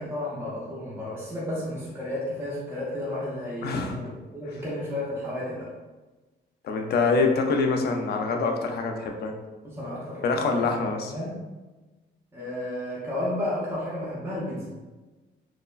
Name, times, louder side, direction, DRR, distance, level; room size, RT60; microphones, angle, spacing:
voice 1, 0.0-5.7 9.6-10.7 11.1-11.3 12.3-14.7, left 1 dB, 10° right, -7 dB, 0.6 m, -32 dB
voice 2, 3.6-4.0 6.6-9.3 10.2-11.1, left 4 dB, 60° left, 3 dB, 0.4 m, -25 dB
3.1 x 2.0 x 2.3 m, 1.2 s
cardioid pair, 130°, 19 cm